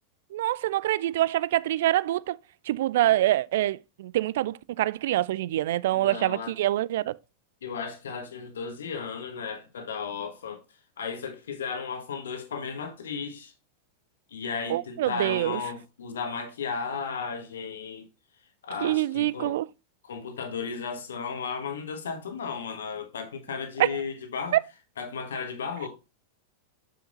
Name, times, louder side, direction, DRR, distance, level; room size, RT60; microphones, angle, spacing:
voice 1, 0.3-2.4 2.7-7.1 14.7-15.6 18.8-19.7 23.8-23.9, right 14 dB, 55° right, 0.3 m, -25 dB
voice 2, 5.9-6.6 7.6-10.6 11.0-13.5 14.3-18.1 18.6-19.6 20.0-24.6 25.0-25.9, left 5 dB, 65° left, 1.4 m, -35 dB
6.8 x 6.5 x 2.5 m
figure-of-eight pair, 90°, 0 cm